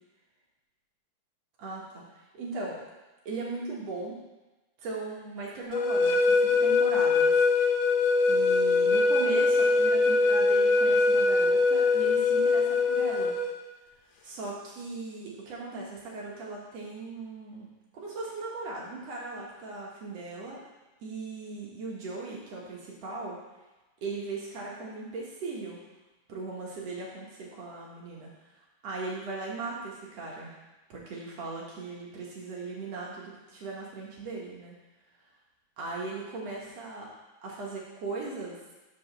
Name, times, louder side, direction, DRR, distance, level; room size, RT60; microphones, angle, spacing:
voice 1, 1.6-2.0 2.3-2.8 3.3-4.2 4.8-7.8 8.3-13.4 14.2-17.7 17.9-20.6 21.0-23.4 24.0-25.8 26.3-28.3 28.8-30.6 30.9-34.7 35.8-37.1 37.4-38.6, right 3 dB, 55° right, -3 dB, 2.2 m, -38 dB
sound 1, 5.7-13.5, left 3 dB, 70° left, 1.7 m, -23 dB
5.9 x 5.2 x 6.6 m, 1.1 s
omnidirectional pair, 3.8 m